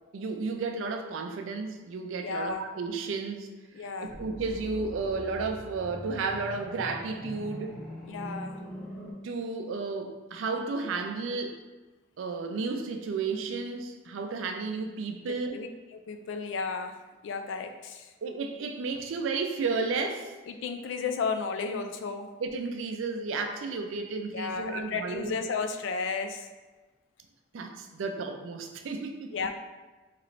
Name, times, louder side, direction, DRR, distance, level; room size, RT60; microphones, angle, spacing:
voice 1, 0.1-3.5 4.0-7.8 9.2-11.6 12.2-15.6 18.2-20.3 22.4-25.4 27.5-29.3, right 4 dB, 85° right, 5 dB, 0.4 m, -33 dB
voice 2, 2.2-2.6 3.7-4.1 8.1-8.6 15.5-16.9 17.2-18.1 20.5-22.3 24.3-26.5 29.3-29.5, left 5 dB, 70° left, 7 dB, 0.3 m, -33 dB
sound 1, 4.1-9.1, equal, ahead, 0.4 m, -42 dB
3.1 x 2.9 x 2.5 m, 1.3 s
head